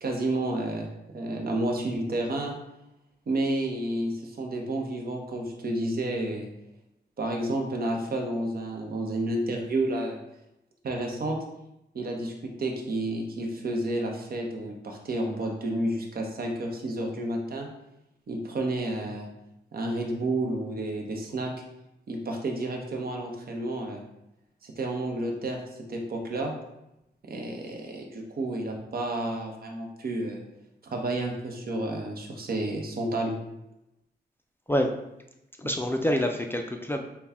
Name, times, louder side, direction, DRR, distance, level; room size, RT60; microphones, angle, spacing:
voice 1, 0.0-0.9 1.1-2.5 3.3-6.5 7.2-10.2 10.8-11.4 11.9-17.7 18.3-19.3 19.7-21.5 22.1-24.0 24.6-26.5 27.2-30.4 30.8-33.4, right 1 dB, 60° right, 2 dB, 0.8 m, -30 dB
voice 2, 35.6-37.0, equal, 15° left, 3 dB, 0.3 m, -26 dB
5.5 x 2.3 x 3.5 m, 0.87 s
wide cardioid pair, 100°, 18 cm